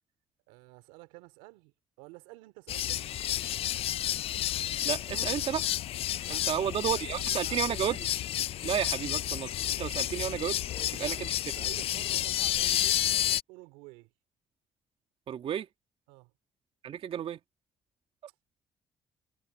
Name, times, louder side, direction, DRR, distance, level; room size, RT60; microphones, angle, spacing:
voice 1, 0.5-3.6 6.2-8.0 10.7-11.2 11.6-13.0 13.5-14.1 16.1-16.3, right 23 dB, 90° right, 2.8 m, -51 dB
sound 1, 2.7-13.4, left 12 dB, 65° left, 0.5 m, -31 dB
voice 2, 4.8-5.7 6.3-8.1 8.6-10.6 10.9-11.3 15.3-15.7 16.8-17.4, right 9 dB, 60° right, 2.1 m, -32 dB
supercardioid pair, 60°, 11 cm